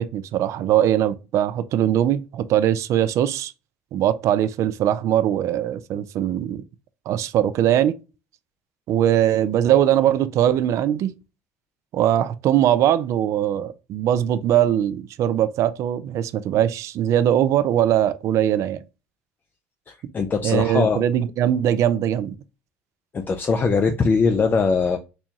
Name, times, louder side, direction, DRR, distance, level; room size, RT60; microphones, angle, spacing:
voice 1, 0.0-3.5 3.9-6.6 7.1-8.0 8.9-11.1 11.9-18.8 20.4-22.3, right 11 dB, 55° right, 0.4 m, -21 dB
voice 2, 19.9-21.0 23.1-25.0, left 5 dB, 30° left, 0.4 m, -21 dB
4.1 x 2.3 x 2.8 m
hypercardioid pair, 75°, 6 cm